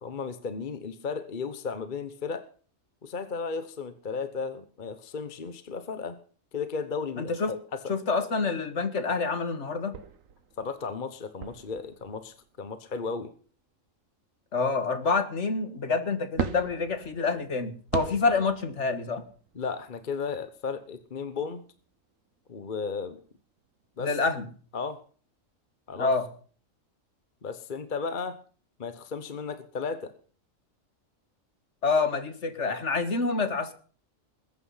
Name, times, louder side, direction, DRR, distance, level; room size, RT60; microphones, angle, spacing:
voice 1, 0.0-2.5 3.0-6.2 6.5-7.8 10.6-13.3 19.5-21.6 22.5-23.2 24.0-24.1 24.7-25.0 25.9-26.1 27.4-28.4 28.8-30.1, left 5 dB, 40° left, 11 dB, 1.2 m, -34 dB
voice 2, 7.2-7.5 7.9-10.0 14.5-19.2 24.0-24.5 26.0-26.3 31.8-33.7, left 4 dB, 65° left, 10 dB, 2.0 m, -27 dB
sound 1, 9.9-12.8 16.3-22.4 22.9-23.6 23.9-24.0 24.4-24.5, right 8 dB, 85° right, 1.5 m, -40 dB
20.5 x 9.6 x 5.7 m, 0.42 s
omnidirectional pair, 1.3 m